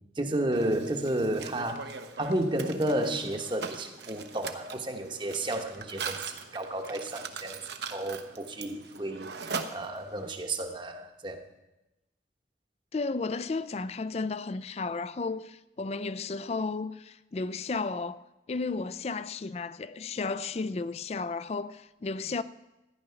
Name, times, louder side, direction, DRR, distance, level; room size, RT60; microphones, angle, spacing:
voice 1, 0.2-1.9 2.2-7.6 7.9-11.4, right 1 dB, 25° right, 1.0 m, -32 dB
Mechanisms, 0.5-10.3, right 5 dB, 75° right, 1.0 m, -41 dB
voice 2, 12.9-22.4, left 4 dB, 35° left, 0.4 m, -33 dB
14.5 x 10.0 x 5.7 m
head